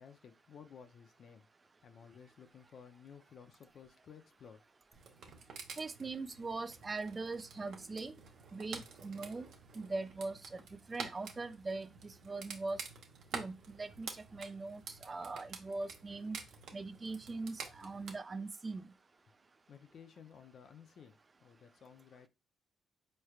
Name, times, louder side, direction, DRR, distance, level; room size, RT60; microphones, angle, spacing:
voice 1, 0.0-1.5 1.8-4.7 19.7-22.3, left 7 dB, 60° left, 0.5 m, -56 dB
sound 1, 4.9-18.1, right 5 dB, 70° right, 0.8 m, -49 dB
voice 2, 5.8-8.1 8.5-9.5 9.8-10.6 10.9-12.8 13.3-16.4 16.7-18.8, right 3 dB, 30° right, 0.4 m, -41 dB
4.4 x 3.2 x 2.3 m
cardioid pair, 90°, 0 cm